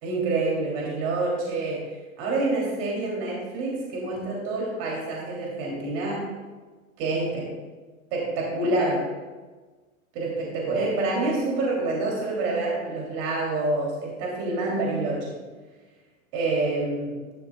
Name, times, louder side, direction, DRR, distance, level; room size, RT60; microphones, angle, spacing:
voice 1, 0.0-1.9 2.2-6.3 7.0-7.4 8.1-9.1 10.1-15.4 16.3-17.2, right 2 dB, 45° right, -3 dB, 3.2 m, -27 dB
12.0 x 11.0 x 2.4 m, 1.3 s
hypercardioid pair, 125°, 42 cm